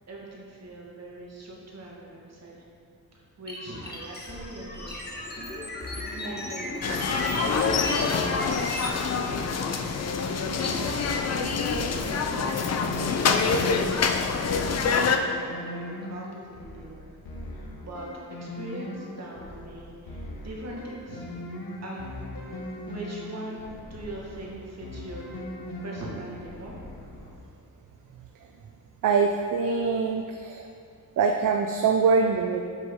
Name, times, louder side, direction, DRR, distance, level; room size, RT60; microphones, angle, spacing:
voice 1, 0.1-2.6 3.1-4.9 5.2-5.4 5.9-8.7 9.3-12.6 13.4-17.2 17.5-21.3 21.8-22.1 22.5-22.6 22.9-25.3 25.8-26.8, right 2 dB, 45° right, -3 dB, 1.5 m, -41 dB
sound 1, 3.5-9.0, left 1 dB, 30° left, 1.1 m, -34 dB
sound 2, 6.8-15.2, left 5 dB, 45° left, 0.5 m, -26 dB
sound 3, 10.4-27.5, left 1 dB, 80° left, 1.1 m, -40 dB
voice 2, 29.0-30.6 31.2-32.6, right 5 dB, 60° right, 4 dB, 0.5 m, -23 dB
7.5 x 6.2 x 3.7 m, 2.4 s
wide cardioid pair, 135°, 35 cm